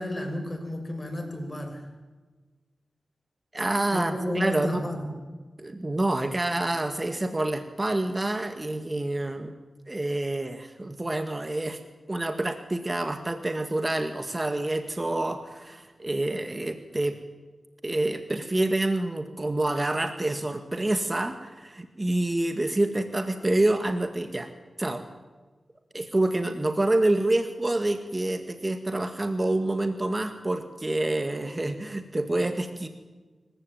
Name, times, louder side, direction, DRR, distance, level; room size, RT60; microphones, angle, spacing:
voice 1, 0.0-1.9 3.9-5.1, left 1 dB, 30° left, 5 dB, 6.7 m, -32 dB
voice 2, 3.5-4.8 5.6-9.5 9.9-11.8 12.1-17.2 17.8-24.5 24.8-25.0 25.9-32.9, right 2 dB, 30° right, 8 dB, 2.0 m, -27 dB
25.5 x 15.0 x 9.1 m, 1.3 s
cardioid pair, 45°, 0 cm